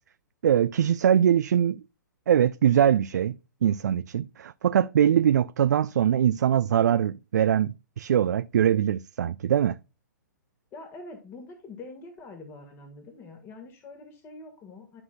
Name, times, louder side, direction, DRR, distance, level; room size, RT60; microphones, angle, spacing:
voice 1, 0.4-1.8 2.3-3.4 3.6-9.8, right 9 dB, 60° right, 0.4 m, -22 dB
voice 2, 10.7-15.0, left 3 dB, 25° left, 1.6 m, -44 dB
11.5 x 6.1 x 2.2 m
figure-of-eight pair, 120°, 11 cm